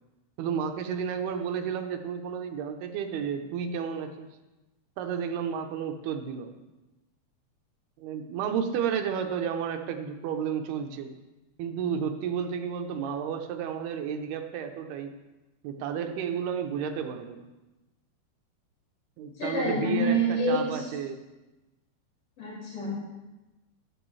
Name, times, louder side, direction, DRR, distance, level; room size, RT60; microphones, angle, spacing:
voice 1, 0.4-4.3 5.0-6.6 8.0-11.1 11.6-15.1 15.6-17.5 19.2-21.2, right 7 dB, 80° right, 6 dB, 2.7 m, -32 dB
voice 2, 19.4-20.8 22.4-22.9, right 1 dB, 35° left, -8 dB, 6.1 m, -27 dB
14.0 x 12.5 x 3.2 m, 1.1 s
omnidirectional pair, 4.7 m